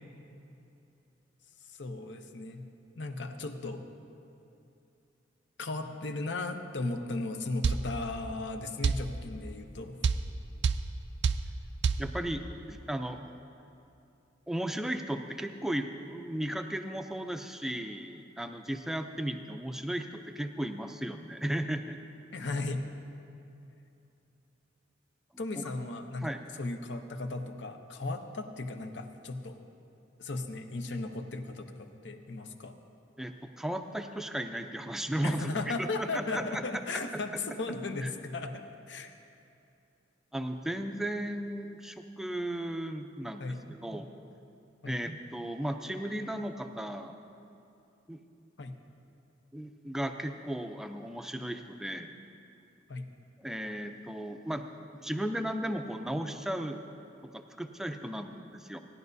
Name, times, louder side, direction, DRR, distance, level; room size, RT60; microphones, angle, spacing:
voice 1, 1.7-2.7 3.0-3.8 5.6-10.0 22.3-22.9 25.4-26.3 26.6-29.6 30.2-32.8 35.2-39.1 43.4-43.7 44.8-45.0 48.6-48.7 52.9-53.1, left 2 dB, 65° left, 6 dB, 0.7 m, -36 dB
sound 1, 7.6-7.8 8.8-9.0 10.0-10.2 10.6-10.8 11.2-11.4 11.8-12.0, right 5 dB, 65° right, 0.4 m, -25 dB
voice 2, 12.0-13.2 14.5-22.0 25.6-25.7 26.2-26.4 33.2-35.5 35.8-36.6 38.0-38.1 40.3-44.1 44.8-47.2 48.1-48.2 49.5-52.1 53.4-54.7 54.9-56.8 57.3-58.8, right 1 dB, ahead, 6 dB, 0.4 m, -35 dB
17.5 x 11.0 x 2.7 m, 2.8 s
head